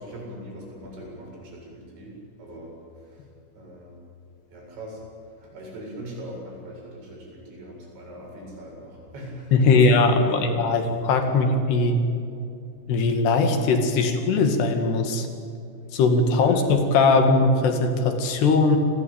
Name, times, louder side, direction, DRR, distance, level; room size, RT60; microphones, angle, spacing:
voice 1, 0.0-2.1 2.4-2.7 3.5-3.9 4.5-5.0 5.4-10.8 16.4-16.6, right 1 dB, 85° right, -2 dB, 10.0 m, -39 dB
voice 2, 9.5-12.0 12.9-15.3 15.9-18.8, left 3 dB, 70° left, 6 dB, 4.3 m, -20 dB
29.0 x 19.5 x 8.8 m, 2.6 s
omnidirectional pair, 5.1 m